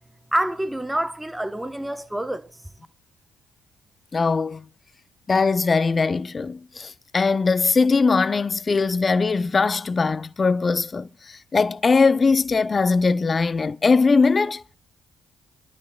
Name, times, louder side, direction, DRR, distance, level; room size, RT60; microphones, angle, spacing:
voice 1, 0.3-2.5, right 1 dB, 10° right, 1.0 m, -26 dB
voice 2, 4.1-4.7 5.3-14.6, left 4 dB, 40° left, 0.5 m, -21 dB
24.5 x 12.5 x 2.3 m
hypercardioid pair, 50°, 0 cm